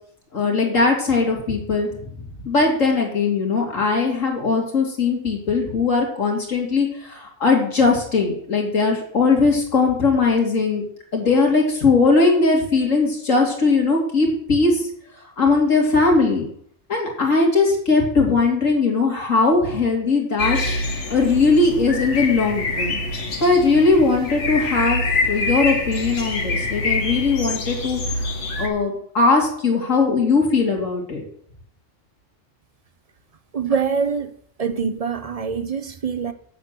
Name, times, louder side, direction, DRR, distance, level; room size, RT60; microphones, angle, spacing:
voice 1, 0.3-1.9 2.5-10.8 11.1-14.7 15.4-16.5 16.9-20.6 21.1-23.0 23.4-28.0 28.6-31.2, left 3 dB, 90° left, 3.1 m, -19 dB
sound 1, 20.4-28.7, left 2 dB, 65° left, 1.6 m, -25 dB
voice 2, 33.5-34.3 34.6-36.3, right 6 dB, 35° right, 0.7 m, -24 dB
8.0 x 7.8 x 6.7 m
omnidirectional pair, 1.3 m